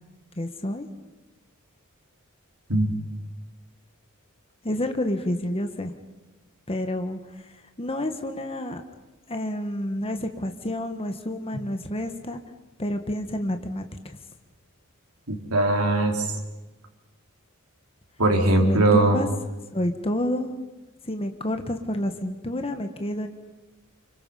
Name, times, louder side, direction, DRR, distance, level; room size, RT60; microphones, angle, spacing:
voice 1, 0.4-0.9 4.6-5.9 6.7-8.8 9.3-12.4 12.8-14.2 18.6-19.3 19.7-20.5 21.0-23.3, left 1 dB, 25° left, 6 dB, 1.4 m, -29 dB
voice 2, 15.3-16.2 18.2-19.2, right 2 dB, 90° right, 1 dB, 4.2 m, -20 dB
29.0 x 25.5 x 5.7 m, 1.1 s
head